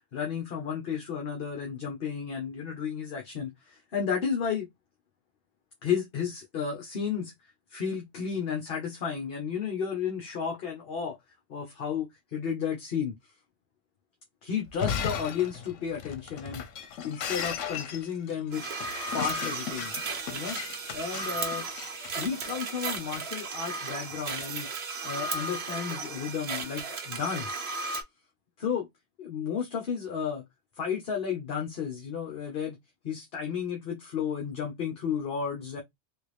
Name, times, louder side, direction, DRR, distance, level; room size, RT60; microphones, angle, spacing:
voice 1, 0.1-4.7 5.8-7.3 7.7-11.2 11.5-13.1 14.4-16.6 17.0-18.6 19.1-19.9 20.3-20.6 20.9-21.6 22.1-24.7 25.0-27.6 28.6-28.9 29.2-30.4 30.8-32.8 33.0-35.8, left 7 dB, 55° left, 1.0 m, -32 dB
Shatter, 14.7-22.7, left 8 dB, 85° left, 1.1 m, -36 dB
sound 1, 18.5-28.0, right 3 dB, 60° right, 1.1 m, -35 dB
3.4 x 2.6 x 3.1 m
omnidirectional pair, 1.2 m